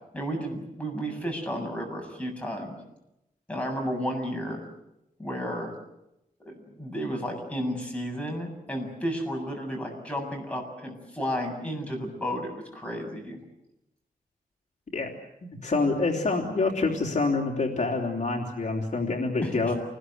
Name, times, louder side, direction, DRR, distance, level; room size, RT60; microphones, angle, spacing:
voice 1, 0.1-2.8 3.5-4.6 5.2-5.7 6.4-13.4 19.4-19.7, equal, 10° left, 1 dB, 7.6 m, -32 dB
voice 2, 15.6-19.7, left 3 dB, 55° left, 0 dB, 3.4 m, -26 dB
28.5 x 21.0 x 8.0 m, 0.87 s
wide cardioid pair, 125°, 15 cm